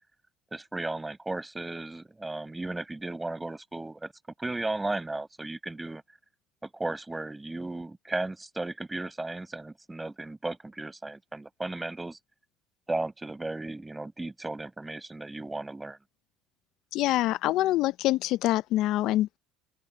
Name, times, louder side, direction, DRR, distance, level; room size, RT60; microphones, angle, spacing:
voice 1, 0.5-4.1 4.4-6.0 6.6-12.2 12.9-16.0, right 2 dB, 10° right, 5.1 m, -35 dB
voice 2, 16.9-19.4, left 15 dB, 70° left, 0.5 m, -25 dB
open air
cardioid pair, 110°, 0 cm